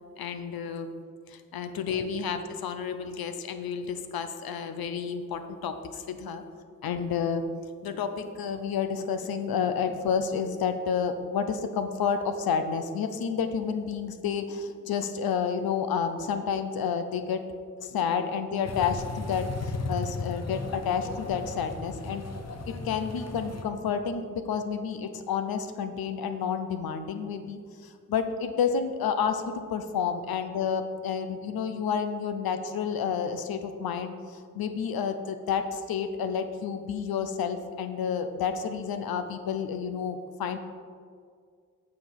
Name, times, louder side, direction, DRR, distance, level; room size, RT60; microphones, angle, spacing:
voice 1, 0.2-0.9 1.3-6.4 6.8-7.4 7.8-17.4 17.8-22.3 22.7-40.6, left 6 dB, 85° left, 9 dB, 0.7 m, -30 dB
sound 1, 18.6-23.6, left 3 dB, 45° left, 0.9 m, -36 dB
8.6 x 5.1 x 5.7 m, 2.1 s
cardioid pair, 55°, 35 cm